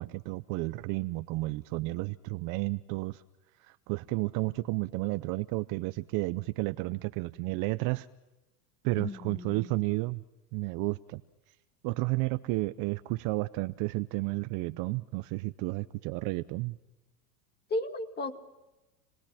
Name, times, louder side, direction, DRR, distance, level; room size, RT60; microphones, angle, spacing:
voice 1, 0.0-3.2 3.6-8.1 8.8-10.2 10.5-11.2 11.8-16.8, right 22 dB, 40° right, 12 dB, 0.7 m, -32 dB
voice 2, 9.0-9.8 17.7-18.4, left 2 dB, 20° left, 7 dB, 2.2 m, -35 dB
29.0 x 20.0 x 5.8 m, 1.0 s
supercardioid pair, 130°, 48 cm